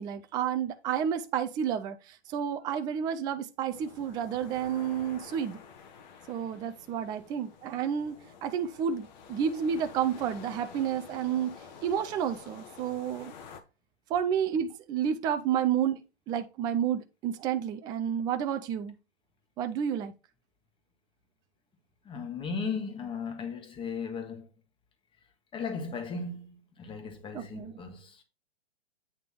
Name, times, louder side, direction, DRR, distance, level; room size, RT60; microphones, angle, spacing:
voice 1, 0.0-5.6 6.3-8.2 8.4-11.6 11.8-13.3 14.1-19.0 19.6-20.1 27.3-27.7, right 8 dB, 15° right, 0.4 m, -30 dB
sound 1, 3.7-13.6, left 6 dB, 45° left, 1.2 m, -49 dB
voice 2, 22.0-24.5 25.5-28.2, left 5 dB, 15° left, 1.3 m, -36 dB
8.6 x 3.4 x 5.7 m
figure-of-eight pair, 120°, 33 cm